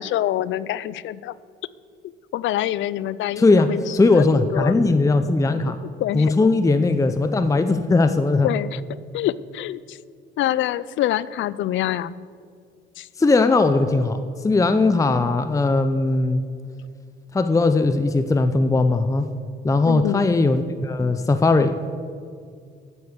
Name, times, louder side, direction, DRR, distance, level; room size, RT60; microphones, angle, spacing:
voice 1, 0.0-1.3 2.3-4.2 4.5-4.7 6.0-6.3 8.4-8.8 9.1-10.0 10.4-12.1 13.0-13.1 19.9-20.3, left 13 dB, 75° left, 19 dB, 0.4 m, -25 dB
voice 2, 3.4-5.8 6.1-8.5 13.2-14.2 14.4-16.4 17.3-19.3 19.6-21.8, left 3 dB, 15° left, 9 dB, 0.6 m, -19 dB
9.3 x 8.5 x 8.1 m, 2.2 s
cardioid pair, 90°, 20 cm